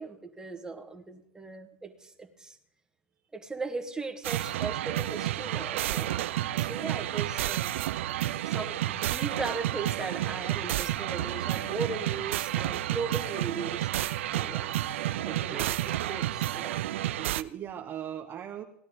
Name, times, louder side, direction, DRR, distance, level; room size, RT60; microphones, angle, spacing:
voice 1, 0.0-2.6 3.3-6.2 6.6-7.8 8.4-13.9 14.3-16.8, right 4 dB, 10° right, 4 dB, 1.6 m, -38 dB
sound 1, 4.2-17.4, right 13 dB, 70° right, 0.4 m, -31 dB
voice 2, 15.2-15.7 17.2-18.6, right 10 dB, 35° right, 2 dB, 1.2 m, -39 dB
18.0 x 11.5 x 3.8 m, 0.75 s
hypercardioid pair, 95°, 7 cm